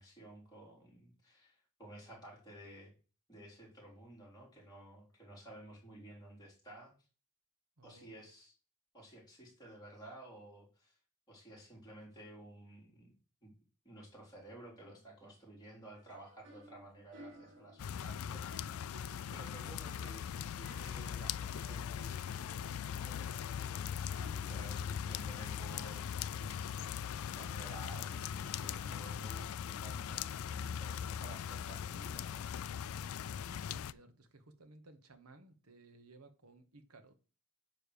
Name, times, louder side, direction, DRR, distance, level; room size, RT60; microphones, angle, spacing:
voice 1, 0.0-2.9 3.3-6.9 7.8-8.5 8.9-10.9 11.3-13.1 13.4-13.5 13.8-19.0 19.3-23.9 24.2-27.0 27.3-32.4, right 1 dB, 20° left, 3.8 m, -54 dB
voice 2, 7.8-8.1 33.2-37.1, right 2 dB, 90° right, 1.2 m, -59 dB
sound 1, 15.9-26.7, right 1 dB, 55° right, 1.5 m, -60 dB
sound 2, 17.8-33.9, left 8 dB, 70° left, 0.3 m, -40 dB
9.4 x 3.3 x 6.8 m
head